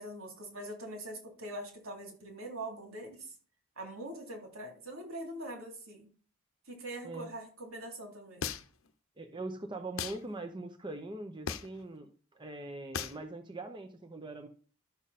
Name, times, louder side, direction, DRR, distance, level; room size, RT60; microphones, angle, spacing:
voice 1, 0.0-3.2 3.8-6.1 6.7-8.5, right 1 dB, 80° right, 1 dB, 3.4 m, -43 dB
sound 1, 8.4-8.9 10.0-10.2 11.5-11.8 12.9-13.2, left 7 dB, 75° left, 0.8 m, -36 dB
voice 2, 9.2-14.5, right 2 dB, 20° right, 5 dB, 0.9 m, -42 dB
12.5 x 6.9 x 4.2 m, 0.41 s
head